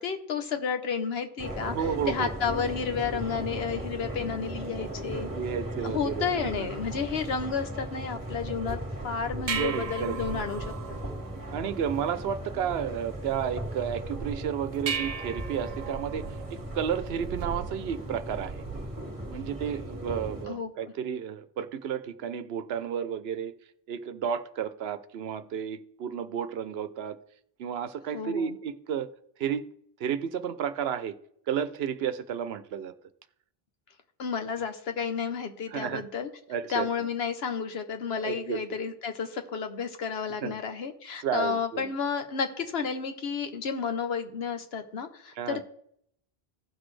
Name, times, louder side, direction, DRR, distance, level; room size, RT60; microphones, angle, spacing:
voice 1, 0.0-1.8 2.1-5.3 5.8-8.8 9.0-11.0 20.5-20.7 28.1-28.5 34.2-36.3 36.7-45.6, left 6 dB, 75° left, 8 dB, 1.2 m, -31 dB
sound 1, 1.4-20.5, right 1 dB, 20° right, 1.8 m, -37 dB
voice 2, 1.6-2.3 5.1-6.7 9.6-10.2 11.5-18.6 19.3-23.5 23.9-27.2 27.6-29.1 29.4-29.7 30.0-31.2 31.5-32.9 35.7-36.0 36.5-36.9 38.2-38.6 40.4-40.5 41.2-41.9 45.4-45.6, right 8 dB, 80° right, 12 dB, 0.9 m, -32 dB
sound 2, 9.0-19.0, right 6 dB, 50° right, 0.5 m, -39 dB
15.5 x 6.1 x 3.3 m, 0.70 s
omnidirectional pair, 1.0 m